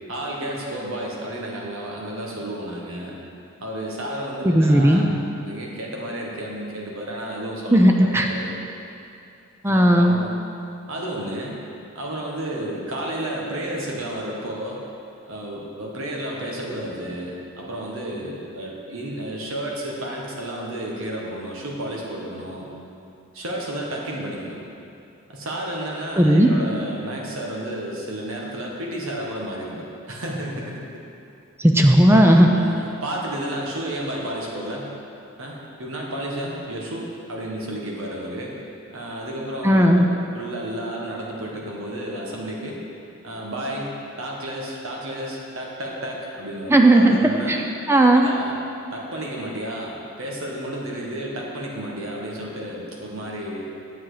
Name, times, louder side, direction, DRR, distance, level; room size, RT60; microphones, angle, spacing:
voice 1, 0.1-3.1 3.6-8.5 9.6-10.4 10.9-11.6 11.9-14.8 15.3-22.7 23.3-24.6 25.3-31.0 32.4-34.9 35.4-38.6 38.9-42.8 43.2-47.5 48.1-48.5 48.9-53.6, right 1 dB, 85° right, -3 dB, 1.5 m, -32 dB
voice 2, 4.4-5.0 7.7-8.3 9.6-10.1 26.2-26.5 31.6-32.5 39.6-40.0 46.7-47.2 47.5-47.6 47.9-48.3, right 1 dB, 10° right, 2 dB, 0.5 m, -15 dB
8.1 x 7.2 x 5.0 m, 2.6 s
head